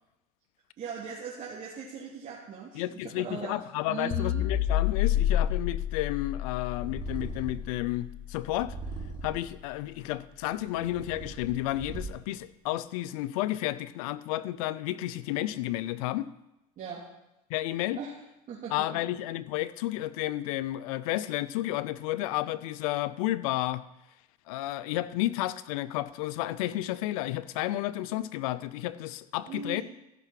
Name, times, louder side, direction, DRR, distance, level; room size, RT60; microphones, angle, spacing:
voice 1, 0.8-2.8 3.2-3.6 3.9-4.4 16.8-17.0 18.0-18.1 18.5-19.0 29.5-29.8, right 5 dB, 45° right, -6 dB, 2.7 m, -39 dB
voice 2, 2.7-8.8 9.2-16.3 17.5-18.0 18.7-23.9 24.5-29.8, left 15 dB, 85° left, 16 dB, 0.6 m, -32 dB
sound 1, 4.1-8.6, left 11 dB, 60° left, 1.0 m, -29 dB
Purr, 6.7-7.8 8.5-9.6 10.3-12.4, right 4 dB, 25° right, 4.1 m, -40 dB
14.5 x 5.9 x 5.9 m, 0.90 s
supercardioid pair, 105°, 18 cm